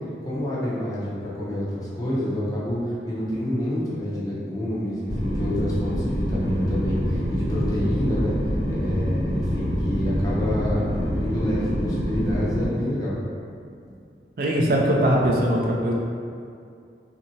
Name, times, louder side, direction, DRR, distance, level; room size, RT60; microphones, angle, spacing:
voice 1, 0.3-8.3 8.7-13.2, equal, 20° left, -8 dB, 0.5 m, -27 dB
sound 1, 5.1-12.6, equal, 70° left, 1.1 m, -26 dB
voice 2, 14.4-15.9, right 1 dB, 50° right, -2 dB, 0.3 m, -21 dB
2.7 x 2.5 x 2.7 m, 2.4 s
head